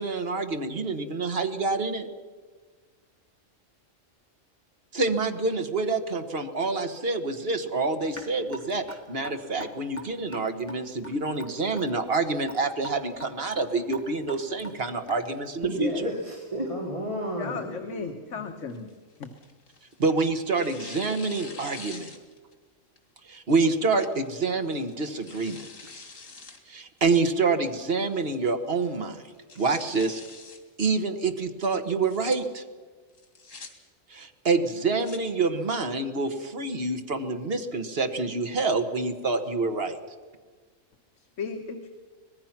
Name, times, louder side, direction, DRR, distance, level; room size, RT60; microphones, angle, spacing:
voice 1, 0.0-2.1 4.9-15.9 20.0-22.1 23.3-25.7 26.7-29.2 29.6-30.2 30.8-32.6 34.1-40.0, right 3 dB, 50° right, 7 dB, 1.7 m, -27 dB
Raindrop / Drip, 8.1-15.5, left 1 dB, 15° left, 2.7 m, -42 dB
voice 2, 15.6-18.4, right 1 dB, 25° right, -2 dB, 2.9 m, -32 dB
voice 3, 17.4-18.9 19.2-19.3 41.4-41.9, left 5 dB, 70° left, 4 dB, 1.6 m, -35 dB
Tearing, 18.7-20.0 20.5-22.5 23.0-23.1 24.0-24.3 24.8-26.6 27.0-27.1 27.7-28.1 28.4-28.5 28.8-28.9 29.3-30.6 31.9-32.4 33.2-33.7 34.7-35.2, left 4 dB, 85° left, 2.7 m, -45 dB
25.0 x 19.5 x 6.0 m, 1.5 s
omnidirectional pair, 1.3 m